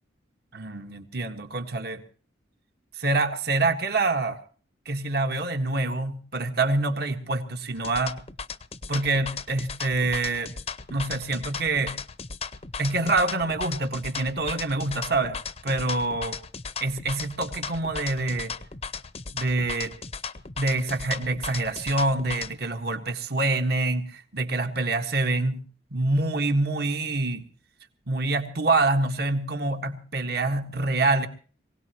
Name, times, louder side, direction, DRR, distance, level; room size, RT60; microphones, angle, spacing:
voice 1, 0.5-2.0 3.0-4.4 4.8-8.2 8.9-10.5 10.9-11.9 12.8-15.4 15.6-16.4 16.8-18.5 19.3-19.9 20.6-25.6 25.9-27.4 28.1-31.3, right 2 dB, 55° right, 6 dB, 1.7 m, -26 dB
sound 1, 7.7-22.5, left 5 dB, 35° left, 0.8 m, -36 dB
23.5 x 17.5 x 3.0 m, 0.42 s
head